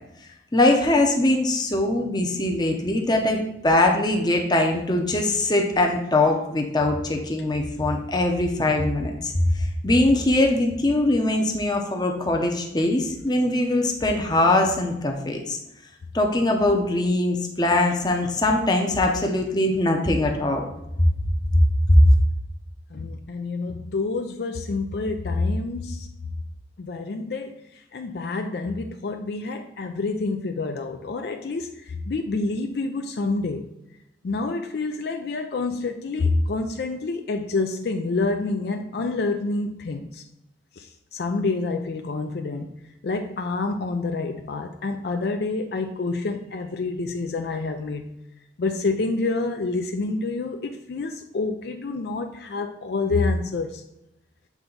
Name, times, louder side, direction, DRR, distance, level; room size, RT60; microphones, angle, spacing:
voice 1, 0.5-9.3 9.8-15.6 16.1-20.6 21.0-21.1 21.5-21.6 21.9-22.0, left 2 dB, 25° left, 2 dB, 0.7 m, -22 dB
voice 2, 22.9-26.1 26.8-27.6 27.9-33.7 34.2-40.2 40.8-40.9 41.1-42.7 43.0-48.1 48.6-53.8, left 3 dB, 60° left, 5 dB, 0.4 m, -27 dB
7.3 x 3.4 x 3.9 m, 0.86 s
head